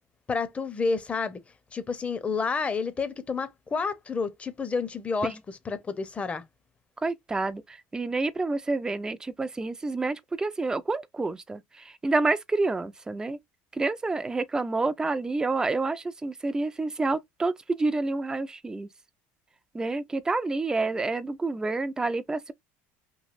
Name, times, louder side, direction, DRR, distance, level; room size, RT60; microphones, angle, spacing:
voice 1, 0.3-1.4 1.7-6.4, left 4 dB, 20° left, 0.7 m, -30 dB
voice 2, 7.0-13.4 13.7-18.9 19.7-22.5, right 3 dB, 10° right, 0.4 m, -28 dB
3.1 x 2.7 x 2.5 m
supercardioid pair, 125°, 6 cm